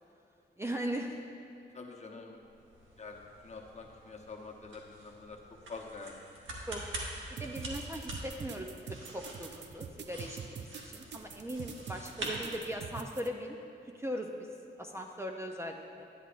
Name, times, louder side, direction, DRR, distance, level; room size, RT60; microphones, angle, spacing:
voice 1, 0.6-1.2 6.7-6.8 7.4-13.6 13.9-14.3 14.8-16.1, equal, 15° right, 1 dB, 0.6 m, -39 dB
voice 2, 1.7-2.4 3.0-5.4 5.7-6.2, left 4 dB, 35° left, 1 dB, 0.9 m, -46 dB
sound 1, 2.3-13.1, right 1 dB, 80° right, 1.4 m, -45 dB
sound 2, 7.4-13.3, right 7 dB, 65° right, 0.5 m, -44 dB
11.0 x 10.0 x 2.5 m, 2.6 s
cardioid pair, 90°, 20 cm